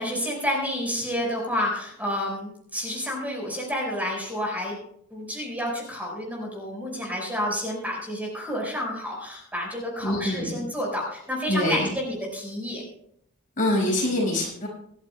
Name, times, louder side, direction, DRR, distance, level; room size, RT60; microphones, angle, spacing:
voice 1, 0.0-4.8 5.1-12.8, equal, 5° right, -2 dB, 4.7 m, -30 dB
voice 2, 10.0-10.6 11.5-11.9 13.6-14.7, left 1 dB, 35° left, -3 dB, 5.8 m, -25 dB
26.5 x 11.5 x 2.3 m, 0.69 s
head